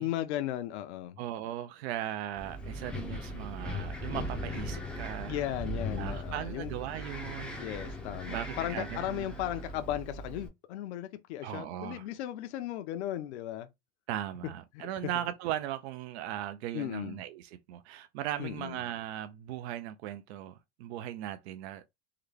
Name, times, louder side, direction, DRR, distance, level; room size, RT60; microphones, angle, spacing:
voice 1, 0.0-1.2 5.3-6.7 7.6-13.7 14.7-14.9 16.7-17.2 18.4-18.8, left 13 dB, 70° left, 0.7 m, -36 dB
voice 2, 1.2-5.4 6.0-7.6 8.3-9.4 11.4-12.1 14.1-21.8, right 12 dB, 65° right, 0.5 m, -38 dB
Wind, 2.4-10.5, left 1 dB, 5° left, 0.5 m, -39 dB
3.8 x 2.2 x 3.2 m
supercardioid pair, 155°, 35 cm